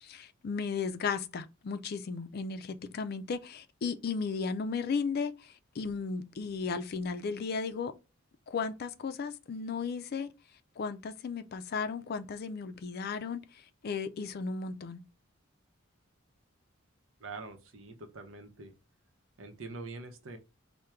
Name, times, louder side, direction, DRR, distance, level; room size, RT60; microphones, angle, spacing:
voice 1, 0.0-7.9 8.5-10.3 10.8-15.0, left 5 dB, 50° left, 0.4 m, -35 dB
voice 2, 17.2-18.7 19.4-20.4, right 3 dB, 75° right, 0.7 m, -44 dB
4.4 x 2.1 x 3.5 m
head